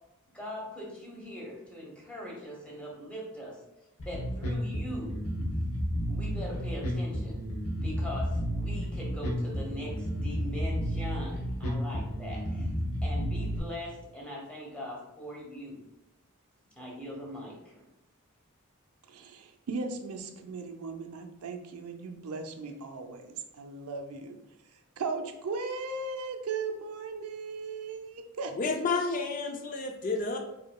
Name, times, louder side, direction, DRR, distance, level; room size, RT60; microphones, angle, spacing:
voice 1, 0.3-3.6 4.0-5.1 6.1-7.4 7.8-12.7 13.0-15.8 16.8-17.9, equal, 5° left, -3 dB, 1.0 m, -41 dB
Bass guitar, 4.0-13.6, equal, 75° left, 0.9 m, -32 dB
voice 2, 19.1-24.4 25.0-28.5, right 4 dB, 85° right, 5 dB, 0.5 m, -37 dB
voice 3, 28.6-30.4, left 4 dB, 40° left, 3 dB, 0.4 m, -30 dB
4.8 x 2.7 x 2.3 m, 0.93 s
head